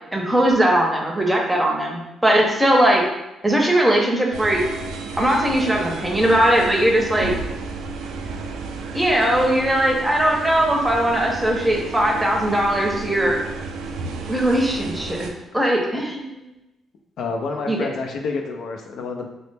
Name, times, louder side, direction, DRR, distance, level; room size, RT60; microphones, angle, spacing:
voice 1, 0.1-3.0 3.4-4.6 5.2-7.3 8.9-13.4 14.3-15.3 15.5-16.4 17.7-17.8, right 1 dB, 10° right, -1 dB, 0.7 m, -19 dB
sound 1, 4.3-15.3, right 4 dB, 90° right, 0.3 m, -32 dB
voice 2, 17.2-19.3, left 4 dB, 70° left, 2 dB, 0.4 m, -28 dB
2.9 x 2.1 x 3.3 m, 0.97 s
cardioid pair, 90°, 0 cm